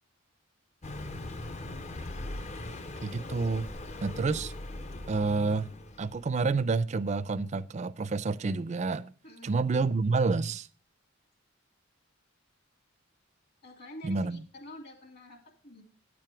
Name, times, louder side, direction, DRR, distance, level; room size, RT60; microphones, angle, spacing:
Car passing by, 0.8-6.3, left 1 dB, 35° left, 0.6 m, -40 dB
voice 1, 3.0-3.7 4.0-4.5 5.1-5.7 6.0-9.1 9.4-10.7 14.0-14.4, right 4 dB, 35° right, 0.4 m, -29 dB
voice 2, 9.2-9.5 13.6-15.8, equal, 50° left, 2.6 m, -48 dB
9.6 x 7.6 x 4.6 m
head